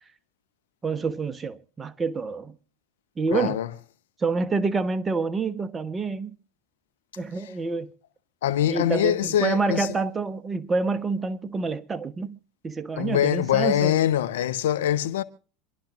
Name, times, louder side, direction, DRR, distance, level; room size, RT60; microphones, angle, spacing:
voice 1, 0.8-2.6 3.2-3.6 4.2-6.4 7.2-7.9 8.7-12.4 12.6-14.0, right 4 dB, 20° right, 1.2 m, -27 dB
voice 2, 3.3-3.7 8.4-9.9 13.0-15.2, left 11 dB, 80° left, 1.0 m, -23 dB
27.0 x 11.5 x 2.6 m
hypercardioid pair, 85°, 0 cm